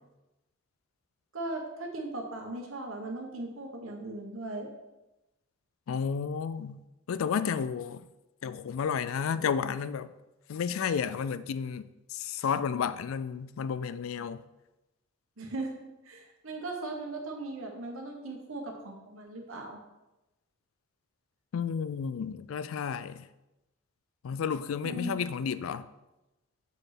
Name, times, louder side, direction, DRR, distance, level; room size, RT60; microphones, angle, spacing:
voice 1, 1.3-4.7 15.4-15.7 16.0-19.8 24.8-25.2, right 2 dB, 75° right, 1.3 m, -38 dB
voice 2, 5.9-6.8 7.1-8.0 8.4-10.1 10.5-14.4 21.5-23.3 24.2-25.9, left 6 dB, 75° left, 0.4 m, -32 dB
6.7 x 4.9 x 4.2 m
head